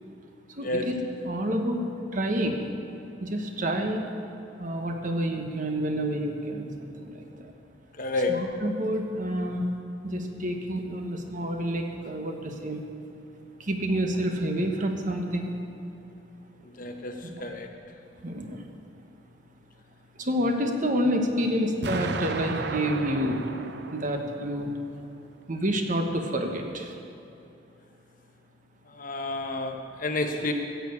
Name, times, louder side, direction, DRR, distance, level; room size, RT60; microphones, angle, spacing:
voice 1, 0.6-1.8 2.1-2.6 3.2-4.0 4.6-7.2 8.1-9.6 10.0-12.8 13.7-15.5 17.2-17.5 18.2-18.6 20.2-23.4 23.9-24.7 25.5-26.9, equal, 45° right, 3 dB, 1.2 m, -28 dB
voice 2, 8.0-8.3 16.8-17.7 29.0-30.5, left 2 dB, 45° left, 4 dB, 1.1 m, -30 dB
Explosion, 21.8-24.8, right 3 dB, 60° right, 0.7 m, -34 dB
15.0 x 6.8 x 8.4 m, 2.7 s
head